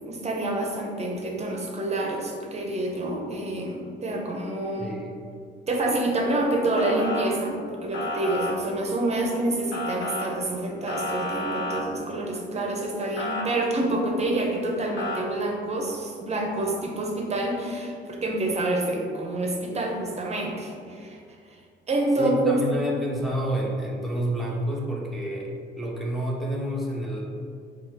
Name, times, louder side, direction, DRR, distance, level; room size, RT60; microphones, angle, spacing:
voice 1, 0.0-5.0 5.7-21.2 21.9-22.6, right 2 dB, 35° right, 1 dB, 0.7 m, -27 dB
voice 2, 4.8-5.1 22.2-27.2, equal, ahead, -4 dB, 0.8 m, -29 dB
Motor vehicle (road) / Siren, 6.8-7.3 7.9-8.5 9.7-10.3 10.9-11.8 13.2-13.4 15.0-15.2, left 1 dB, 65° left, 0.8 m, -30 dB
4.5 x 2.5 x 3.2 m, 2.3 s
cardioid pair, 90°, 20 cm